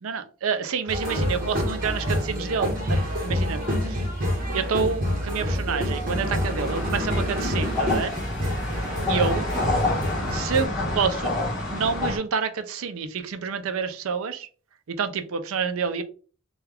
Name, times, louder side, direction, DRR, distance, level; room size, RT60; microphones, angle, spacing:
voice 1, 0.0-4.1 4.5-8.1 9.1-9.5 10.3-11.3 11.7-14.5 14.9-16.0, right 6 dB, 75° right, 10 dB, 0.5 m, -28 dB
sound 1, 0.9-10.7, equal, 40° right, 1.1 m, -27 dB
sound 2, 6.6-12.2, left 2 dB, ahead, 1.5 m, -28 dB
3.3 x 2.3 x 3.3 m, 0.39 s
head